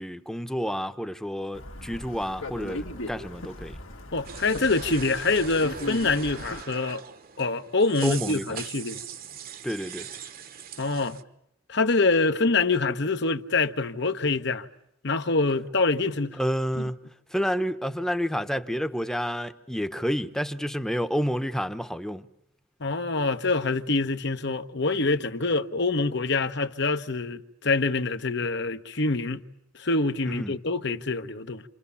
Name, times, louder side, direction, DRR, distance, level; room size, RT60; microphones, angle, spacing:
voice 1, 0.0-3.8 8.0-8.6 9.6-10.1 16.3-22.3 30.3-30.6, equal, 5° left, 1.0 m, -29 dB
sound 1, 1.5-6.6, left 1 dB, 75° left, 2.3 m, -38 dB
voice 2, 4.1-7.0 7.4-9.0 10.8-11.2 11.7-14.7 15.0-16.4 16.8-16.9 22.8-29.4 29.8-31.6, left 3 dB, 55° left, 1.3 m, -25 dB
sound 2, 4.2-11.2, right 8 dB, 45° right, 1.2 m, -41 dB
28.5 x 28.0 x 7.1 m
head